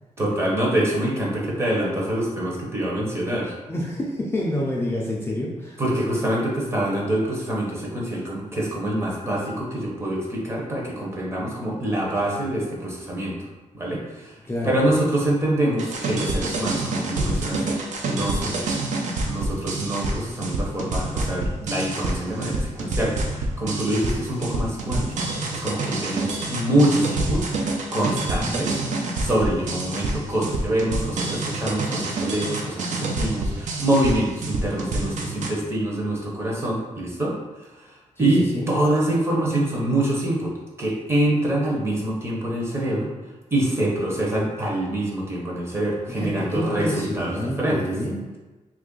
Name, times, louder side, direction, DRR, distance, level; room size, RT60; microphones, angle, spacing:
voice 1, 0.2-3.5 5.8-13.5 13.7-14.4 14.6-17.8 18.0-18.8 19.3-28.8 29.2-40.5 40.8-43.1 43.5-47.8, right 1 dB, 20° right, -3 dB, 0.7 m, -25 dB
voice 2, 3.7-5.8 14.4-14.7 28.3-28.6 38.2-38.7 46.1-48.2, left 1 dB, 20° left, -5 dB, 0.3 m, -28 dB
sound 1, 15.8-35.5, right 2 dB, 70° right, 0.5 m, -27 dB
2.9 x 2.4 x 3.7 m, 1.2 s
wide cardioid pair, 175°, 13 cm